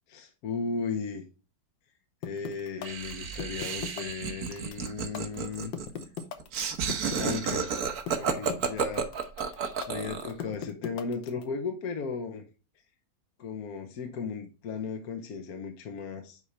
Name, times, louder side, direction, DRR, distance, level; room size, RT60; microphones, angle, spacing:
voice 1, 0.1-1.3 2.2-5.7 7.2-7.8 8.1-9.1 9.9-12.5 13.4-16.4, left 5 dB, 60° left, 5 dB, 1.3 m, -36 dB
sound 1, 2.2-11.4, left 8 dB, 85° left, 1.6 m, -38 dB
Laughter, 2.8-10.4, right 6 dB, 60° right, 1.4 m, -32 dB
9.9 x 4.1 x 3.3 m, 0.33 s
omnidirectional pair, 1.9 m